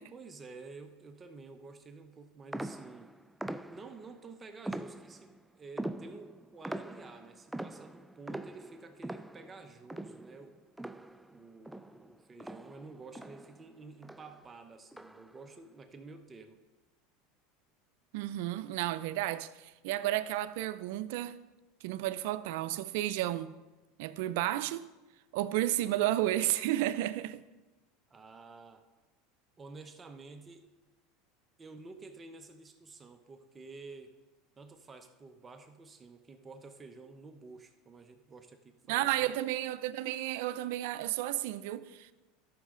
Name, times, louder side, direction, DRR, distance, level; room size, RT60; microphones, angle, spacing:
voice 1, 0.0-3.1 3.7-10.6 11.3-16.6 28.1-28.8 29.6-30.7 31.6-34.1 34.6-39.3, right 3 dB, 20° right, 0.8 m, -50 dB
sound 1, 2.5-4.1 4.6-5.4 5.8-11.4 11.6-13.7 14.0-14.4 14.9-15.4, right 1 dB, 5° right, 0.3 m, -43 dB
voice 2, 18.1-21.4 21.8-23.6 24.0-24.8 25.3-27.4 38.9-42.1, right 14 dB, 75° right, 0.5 m, -32 dB
13.0 x 6.4 x 3.8 m
supercardioid pair, 115°, 0 cm